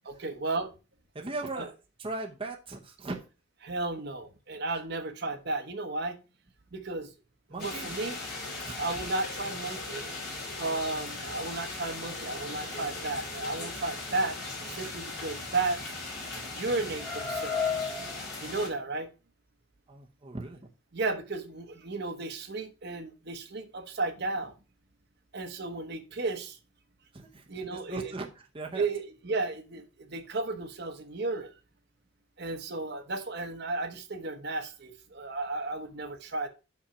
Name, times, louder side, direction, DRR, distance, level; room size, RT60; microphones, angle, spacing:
voice 1, 0.2-0.7 1.6-1.7 3.6-6.2 6.7-7.1 7.6-8.2 8.8-10.1 10.6-14.4 14.7-15.8 16.5-17.9 18.4-19.1 20.9-24.5 25.3-26.6 27.5-28.1 28.7-31.5 32.4-36.5, right 3 dB, 55° right, 6 dB, 1.1 m, -34 dB
voice 2, 1.1-1.7 2.0-3.2 4.7-4.8 7.5-7.9 8.6-8.8 19.9-20.6 27.1-27.4 27.7-28.3 28.5-28.9, right 2 dB, 25° right, 1 dB, 0.8 m, -38 dB
sound 1, 7.6-18.7, left 3 dB, 55° left, 3.0 m, -37 dB
5.9 x 5.6 x 4.9 m, 0.32 s
head